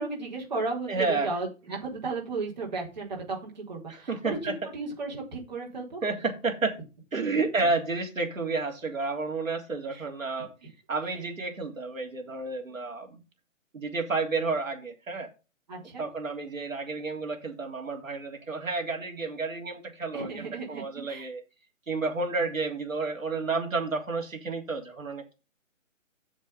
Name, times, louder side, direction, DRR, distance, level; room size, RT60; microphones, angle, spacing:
voice 1, 0.0-6.0 9.9-10.0 10.4-10.5 15.7-16.0 20.1-21.3, right 3 dB, 35° right, 4.4 m, -34 dB
voice 2, 0.9-1.3 3.9-4.7 6.0-6.8 7.1-10.5 10.9-13.2 13.7-15.3 16.0-21.4 21.9-25.3, right 3 dB, 80° right, 3.6 m, -31 dB
8.5 x 6.7 x 5.3 m
hypercardioid pair, 175°, 39 cm